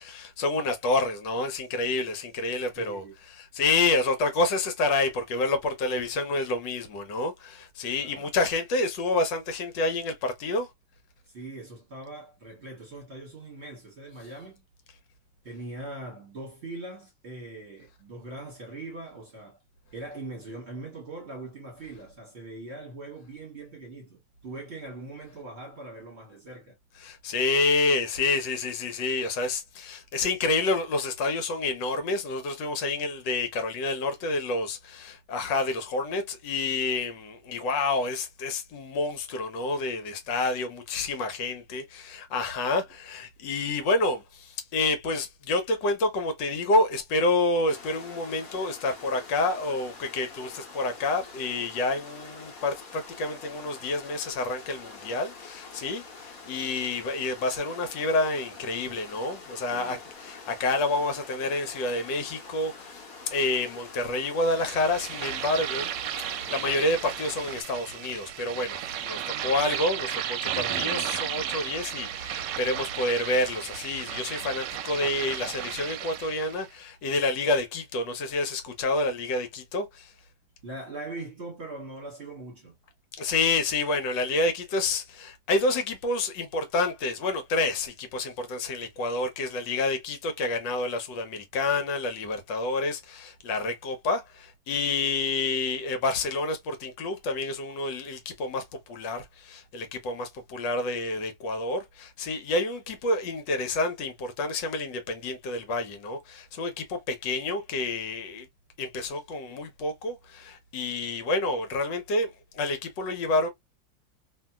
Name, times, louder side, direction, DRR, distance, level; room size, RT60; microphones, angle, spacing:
voice 1, 0.0-10.7 27.0-63.0 63.3-65.9 66.2-80.1 83.2-98.6 98.9-108.5 108.8-113.5, left 2 dB, 75° left, 1.5 m, -28 dB
voice 2, 2.8-3.1 8.0-8.3 11.3-14.6 15.4-19.6 19.9-26.8 59.7-60.0 70.6-71.0 80.6-82.8, right 2 dB, 40° right, 1.2 m, -41 dB
sound 1, 47.7-67.6, left 4 dB, 55° left, 1.3 m, -46 dB
sound 2, 64.4-76.7, right 10 dB, 75° right, 1.1 m, -34 dB
2.9 x 2.7 x 2.3 m
omnidirectional pair, 2.0 m